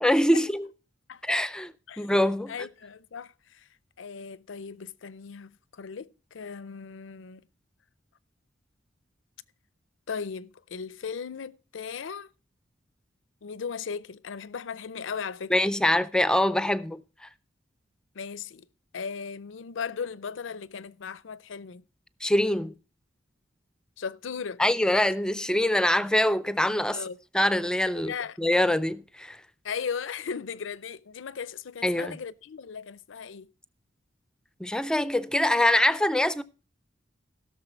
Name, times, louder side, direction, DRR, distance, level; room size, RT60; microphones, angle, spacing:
voice 1, 0.0-0.7 1.2-2.5 15.5-17.3 22.2-22.7 24.6-27.0 27.3-28.1 28.4-29.4 31.8-32.2 34.6-36.4, left 1 dB, 5° left, 0.4 m, -24 dB
voice 2, 2.5-3.7 4.0-7.4 10.1-12.3 13.4-15.7 18.1-18.7 18.9-21.8 24.0-24.6 26.9-27.2 28.0-28.4 29.6-33.5, left 6 dB, 85° left, 0.5 m, -37 dB
16.5 x 6.6 x 4.4 m
head